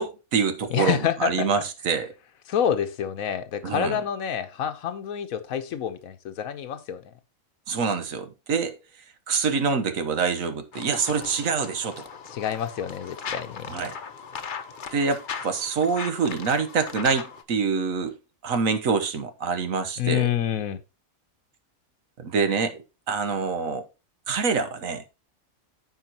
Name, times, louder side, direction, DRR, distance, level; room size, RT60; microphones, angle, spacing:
voice 1, 0.0-2.1 3.6-4.0 7.7-8.8 9.3-12.0 13.7-13.9 14.9-18.2 18.4-20.3 22.2-23.8 24.3-25.0, right 5 dB, 80° right, 1.5 m, -26 dB
voice 2, 0.7-1.6 2.5-7.1 12.3-13.7 20.0-20.8, left 9 dB, 85° left, 1.3 m, -28 dB
sound 1, 10.7-17.4, left 6 dB, 45° left, 0.8 m, -38 dB
14.0 x 4.8 x 2.9 m
omnidirectional pair, 1.4 m